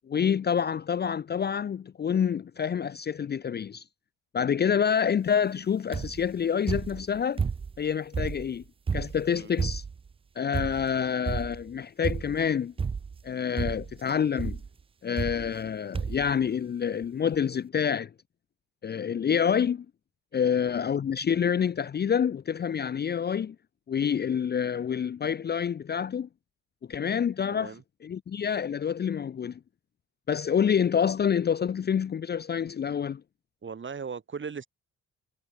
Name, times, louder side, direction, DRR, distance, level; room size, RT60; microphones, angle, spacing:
voice 1, 0.1-3.8 4.3-7.4 7.8-8.6 8.9-9.8 10.4-12.7 13.2-14.6 15.0-18.1 18.8-19.9 20.3-23.6 23.9-26.3 26.9-27.7 28.0-29.6 30.3-33.2, left 7 dB, 35° left, 0.6 m, -27 dB
sound 1, 5.9-6.3 6.7-7.8 8.1-10.1 10.5-11.0 11.3-11.7 12.0-12.5 12.8-13.3 13.6-14.0 14.4-14.7 15.2-15.7 15.9-16.3 17.0-17.1 17.3-17.4, right 5 dB, 20° right, 0.4 m, -32 dB
voice 2, 27.5-27.8 33.6-34.7, right 6 dB, 40° right, 5.0 m, -38 dB
cardioid pair, 90°, 30 cm